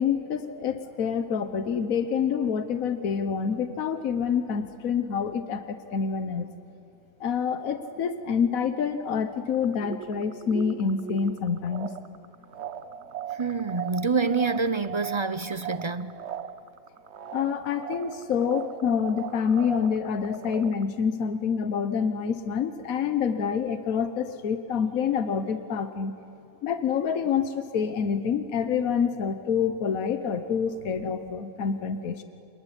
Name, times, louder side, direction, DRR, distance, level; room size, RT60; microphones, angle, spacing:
voice 1, 0.0-6.5 7.2-11.9 17.3-26.1 26.6-32.2, left 6 dB, 75° left, 1.5 m, -27 dB
sound 1, 9.5-20.8, right 9 dB, 55° right, 1.0 m, -39 dB
voice 2, 13.3-16.2, right 4 dB, 40° right, 0.4 m, -27 dB
26.5 x 21.0 x 10.0 m
omnidirectional pair, 1.5 m